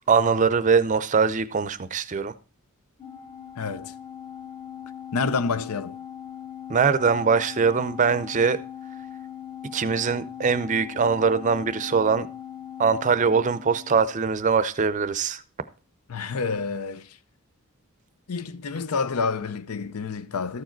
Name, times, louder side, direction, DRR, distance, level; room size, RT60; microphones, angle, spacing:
voice 1, 0.1-2.3 6.7-8.6 9.7-12.3 12.8-15.4, right 5 dB, 35° right, 0.5 m, -22 dB
Organ, 3.0-14.2, left 9 dB, 20° left, 0.8 m, -40 dB
voice 2, 3.6-3.9 5.1-6.0 16.1-17.2 18.3-20.6, left 4 dB, 85° left, 0.6 m, -28 dB
13.5 x 4.8 x 4.4 m
head